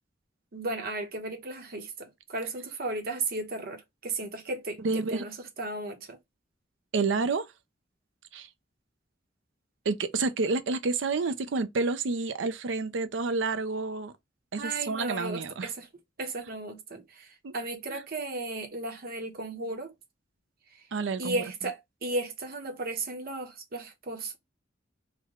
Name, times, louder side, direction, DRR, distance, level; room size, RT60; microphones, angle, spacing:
voice 1, 0.5-6.2 14.6-15.9 16.2-19.9 21.2-24.4, right 2 dB, 55° right, 0.9 m, -35 dB
voice 2, 4.8-5.2 6.9-7.5 8.3-8.5 9.9-14.1 14.5-15.7 17.4-17.5 17.9-18.0 20.9-21.4, right 4 dB, 75° right, 0.5 m, -29 dB
3.3 x 2.2 x 3.6 m
head